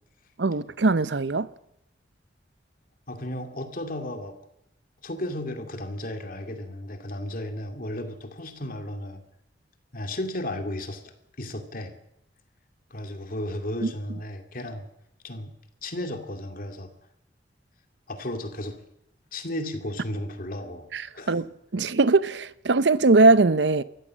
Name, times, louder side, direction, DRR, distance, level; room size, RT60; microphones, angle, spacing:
voice 1, 0.4-1.5 13.8-13.9 20.9-21.5 21.7-23.8, right 3 dB, 70° right, 0.7 m, -20 dB
voice 2, 3.1-4.4 5.0-9.2 9.9-12.0 12.9-14.9 15.2-15.5 15.8-16.9 18.1-18.8 19.3-21.4, left 1 dB, 50° left, 2.4 m, -34 dB
24.0 x 14.5 x 7.5 m
head